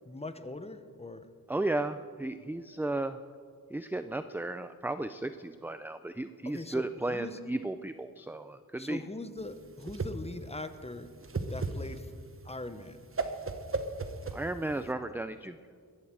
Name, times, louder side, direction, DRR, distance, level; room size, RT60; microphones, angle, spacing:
voice 1, 0.0-1.3 6.4-7.4 8.8-11.1 11.5-12.1 12.4-13.0, left 2 dB, 15° left, 10 dB, 0.9 m, -41 dB
voice 2, 1.5-3.2 3.7-9.0 14.3-15.6, right 2 dB, 5° right, 11 dB, 0.4 m, -34 dB
Whoosh swoosh swish, 9.4-14.9, right 3 dB, 35° right, 1.1 m, -36 dB
21.5 x 8.1 x 7.6 m, 2.1 s
wide cardioid pair, 95°, 36 cm